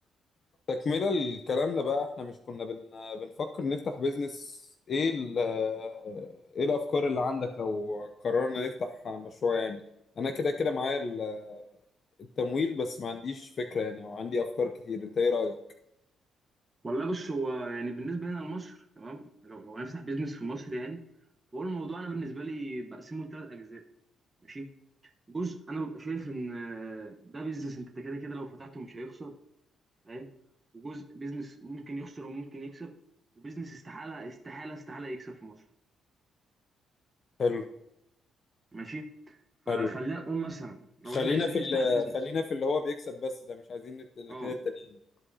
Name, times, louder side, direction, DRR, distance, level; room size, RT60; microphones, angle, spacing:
voice 1, 0.7-9.8 10.2-11.7 12.4-15.6 37.4-37.6 39.7-39.9 41.1-44.9, left 4 dB, 50° left, 6 dB, 0.6 m, -31 dB
voice 2, 16.8-21.0 21.5-23.8 24.5-24.7 25.3-29.3 30.0-30.3 30.7-32.9 33.4-35.6 38.7-39.4 39.7-42.2 44.3-44.6, right 2 dB, 25° right, 2 dB, 1.1 m, -37 dB
13.5 x 4.9 x 2.8 m, 0.80 s
cardioid pair, 90°, 0 cm